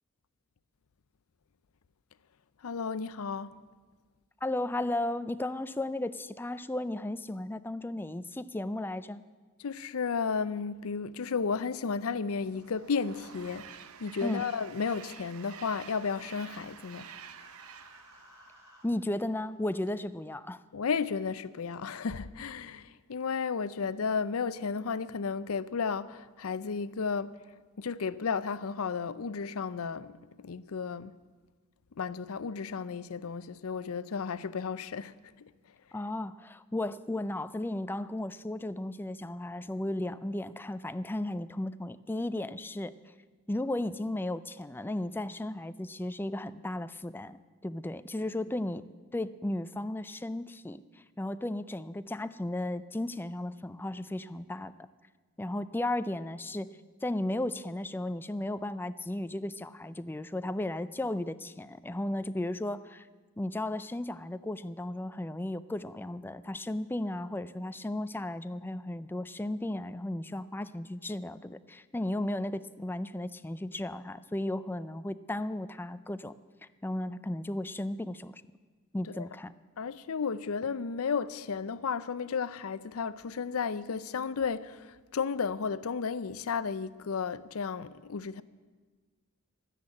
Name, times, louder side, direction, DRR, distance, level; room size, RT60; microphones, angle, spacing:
voice 1, 2.6-3.6 9.6-17.1 20.7-27.4 27.8-31.1 32.0-35.5 79.1-79.3 79.8-88.4, left 5 dB, 80° left, 0.5 m, -33 dB
voice 2, 4.4-9.2 14.2-14.4 18.8-20.6 35.9-42.9 43.5-48.8 49.1-50.8 51.2-54.7 55.4-56.7 57.0-63.1 63.4-76.3 76.8-78.4 78.9-79.5, left 1 dB, 10° left, 0.4 m, -35 dB
Train, 11.9-19.4, right 8 dB, 85° right, 0.7 m, -50 dB
Human voice, 16.1-18.9, left 1 dB, 15° right, 2.9 m, -58 dB
12.5 x 10.0 x 8.7 m
head